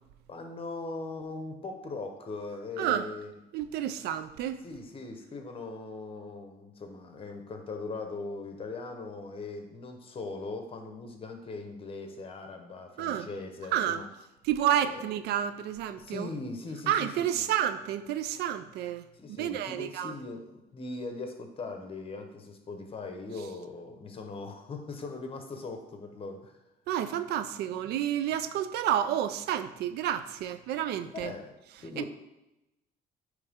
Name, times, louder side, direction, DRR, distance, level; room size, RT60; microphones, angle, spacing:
voice 1, 0.3-3.3 4.6-14.1 14.8-15.0 16.0-17.5 19.2-26.6 31.1-32.1, left 3 dB, 35° left, 1.0 m, -40 dB
voice 2, 2.8-3.1 3.5-4.6 13.0-13.3 13.7-14.0 14.4-16.3 16.9-20.1 26.9-31.3 32.0-32.1, right 10 dB, 75° right, 0.4 m, -30 dB
9.2 x 3.3 x 3.6 m
cardioid pair, 110°, 17 cm